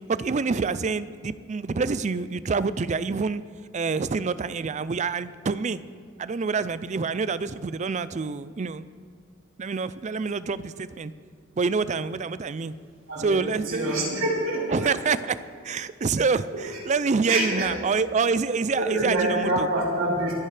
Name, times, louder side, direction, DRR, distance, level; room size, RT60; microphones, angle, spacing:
voice 1, 0.1-3.4 3.7-5.8 6.2-8.8 9.6-11.1 11.6-12.7 13.2-13.9 14.7-15.4 15.6-19.7, right 4 dB, 35° right, 15 dB, 0.4 m, -27 dB
voice 2, 13.1-14.9 16.5-16.7 17.3-17.7 18.7-20.3, right 1 dB, 75° right, -5 dB, 4.1 m, -26 dB
29.5 x 10.0 x 3.3 m, 2.2 s
head